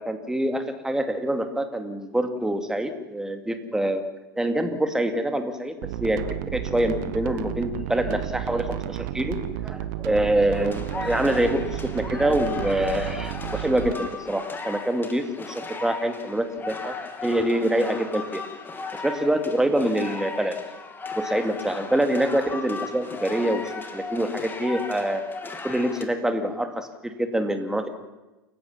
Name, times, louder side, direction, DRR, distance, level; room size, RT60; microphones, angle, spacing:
voice 1, 0.0-4.0 4.4-5.7 6.0-6.2 6.5-9.4 9.6-17.0 17.2-18.4 19.0-20.6 21.2-23.6 23.9-25.2 25.6-27.9, right 1 dB, 5° right, 7 dB, 2.6 m, -25 dB
sound 1, 5.8-13.9, right 13 dB, 55° right, 1.4 m, -32 dB
sound 2, 10.5-26.0, left 4 dB, 15° left, 2.8 m, -36 dB
28.5 x 15.5 x 7.3 m, 1.1 s
figure-of-eight pair, 90°, 12 cm